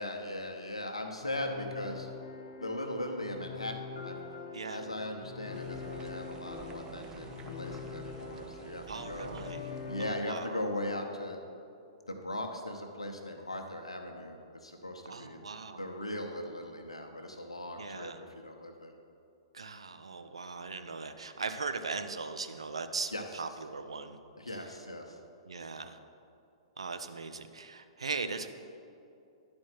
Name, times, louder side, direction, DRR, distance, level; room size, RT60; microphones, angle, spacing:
voice 1, 0.0-2.1 2.6-4.1 4.7-7.3 7.6-9.3 9.9-11.4 12.1-15.4 15.8-18.9 23.1-23.2 24.4-25.2, left 1 dB, 85° left, 4 dB, 0.8 m, -39 dB
sound 1, 1.2-10.1, left 5 dB, 60° left, 0.8 m, -44 dB
voice 2, 4.5-4.8 8.9-9.7 10.0-10.6 15.1-15.9 17.8-18.2 19.5-24.2 25.5-26.0 26.8-28.5, right 4 dB, 75° right, 9 dB, 0.5 m, -39 dB
sound 2, 5.5-10.1, right 6 dB, 25° right, 0.5 m, -50 dB
10.5 x 4.4 x 4.4 m, 2.6 s
figure-of-eight pair, 110°, 3 cm